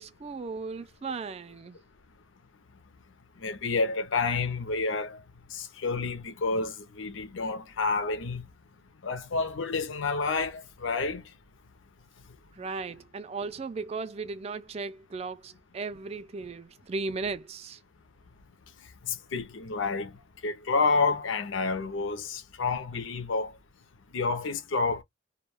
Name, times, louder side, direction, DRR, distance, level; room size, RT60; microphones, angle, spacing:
voice 1, 0.0-1.8 12.6-17.8, right 4 dB, 30° right, 0.3 m, -36 dB
voice 2, 3.4-5.2 5.5-8.5 9.0-11.2 19.0-20.1 20.4-23.5 24.1-25.0, left 4 dB, 70° left, 0.5 m, -29 dB
2.2 x 2.2 x 3.2 m
head